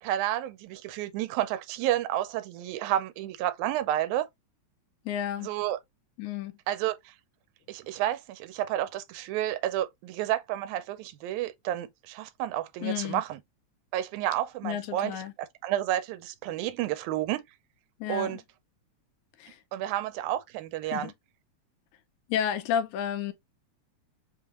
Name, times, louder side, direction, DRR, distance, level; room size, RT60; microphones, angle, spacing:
voice 1, 0.0-4.3 5.4-5.8 6.7-7.1 7.7-13.4 13.9-15.1 15.6-17.4 18.1-18.4 19.7-21.1, right 12 dB, 90° right, 2.0 m, -30 dB
voice 2, 5.1-5.5 6.2-6.6 12.8-13.2 14.6-15.3 18.0-18.4 19.4-19.6 20.9-21.1 22.3-23.3, left 9 dB, 85° left, 2.0 m, -31 dB
5.3 x 2.3 x 2.9 m
omnidirectional pair, 3.3 m